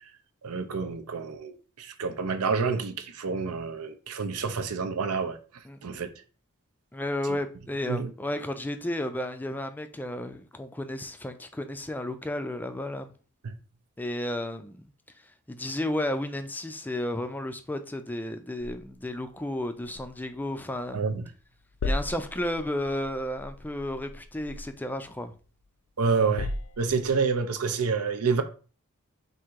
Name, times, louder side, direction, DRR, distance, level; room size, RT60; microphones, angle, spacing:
voice 1, 0.4-5.4 5.8-6.1 7.9-8.1 13.4-13.5 20.9-21.2 26.0-26.5 26.8-28.4, right 5 dB, 80° right, 0.6 m, -28 dB
voice 2, 5.6-6.0 6.9-13.1 14.0-14.9 15.5-21.0 21.8-25.3, left 1 dB, 10° left, 0.4 m, -33 dB
sound 1, 18.6-21.2 21.4-25.7 26.1-27.3, left 2 dB, 70° left, 0.5 m, -38 dB
3.7 x 2.7 x 4.5 m
head